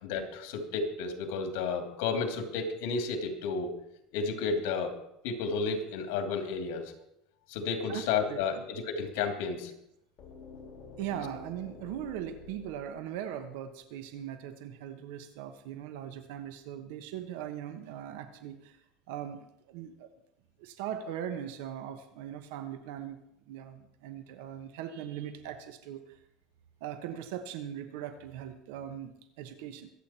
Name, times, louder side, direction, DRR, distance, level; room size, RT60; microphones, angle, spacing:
voice 1, 0.0-3.7 4.1-5.0 5.2-6.9 7.5-9.7, left 5 dB, 80° left, 5 dB, 2.6 m, -32 dB
voice 2, 7.9-8.6 11.0-18.8 19.1-20.1 20.6-23.2 23.5-26.2 26.8-29.9, right 10 dB, 80° right, 9 dB, 1.2 m, -40 dB
sound 1, 10.2-14.1, left 4 dB, 40° left, 3.7 m, -50 dB
23.0 x 8.7 x 4.4 m, 0.78 s
cardioid pair, 155°, 0 cm